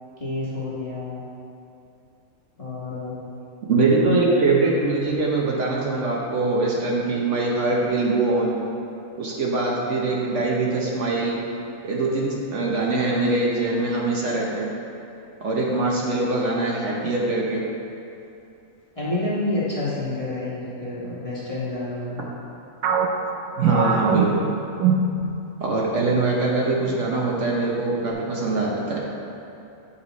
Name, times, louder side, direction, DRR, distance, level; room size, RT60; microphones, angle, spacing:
voice 1, 0.2-1.2 2.6-3.2 18.9-22.2, left 2 dB, 25° left, -8 dB, 1.3 m, -28 dB
voice 2, 3.7-8.6 9.2-11.4 11.8-14.7 15.4-17.6 23.6-24.5 25.6-29.0, right 3 dB, 60° right, -3 dB, 1.1 m, -23 dB
sound 1, 22.8-25.7 26.0-26.2 26.8-27.3, right 5 dB, 85° right, 1.1 m, -23 dB
8.2 x 4.8 x 4.0 m, 2.8 s
omnidirectional pair, 1.5 m